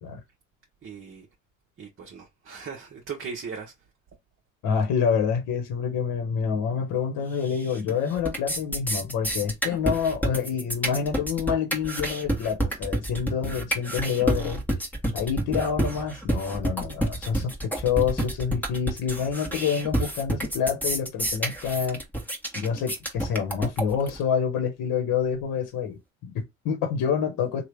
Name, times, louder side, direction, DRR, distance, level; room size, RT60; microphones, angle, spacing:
voice 1, 0.8-1.3 1.8-3.7, right 6 dB, 30° right, 0.9 m, -38 dB
voice 2, 4.6-14.6 15.1-22.0 22.5-27.6, left 7 dB, 55° left, 1.2 m, -27 dB
sound 1, 7.5-7.9 8.2-24.2, right 1 dB, 5° left, 1.1 m, -28 dB
2.9 x 2.4 x 3.3 m
hypercardioid pair, 65°, 41 cm